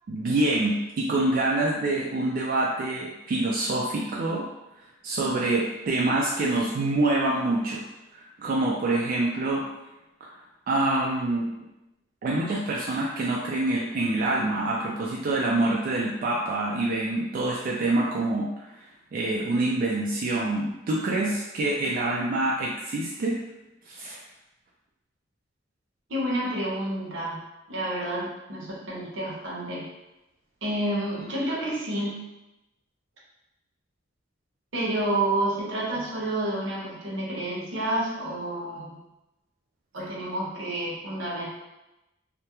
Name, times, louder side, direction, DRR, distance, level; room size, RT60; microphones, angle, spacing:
voice 1, 0.1-4.4 5.0-7.8 8.1-9.6 10.2-10.3 10.7-11.5 12.2-18.7 19.1-23.4 23.9-24.2, right 2 dB, 50° right, -4 dB, 0.3 m, -26 dB
voice 2, 26.1-27.4 27.7-29.9 30.6-32.2 34.7-39.0 39.9-41.5, right 1 dB, 75° right, -4 dB, 0.7 m, -29 dB
2.2 x 2.1 x 2.9 m, 0.97 s
head